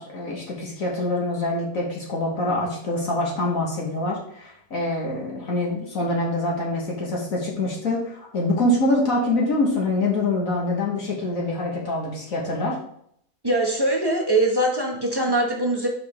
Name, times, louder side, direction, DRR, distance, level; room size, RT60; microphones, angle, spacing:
voice 1, 0.0-12.8, left 2 dB, 55° left, -2 dB, 1.6 m, -25 dB
voice 2, 13.4-15.9, right 1 dB, 20° right, -1 dB, 0.9 m, -22 dB
5.7 x 5.0 x 4.3 m, 0.68 s
omnidirectional pair, 1.8 m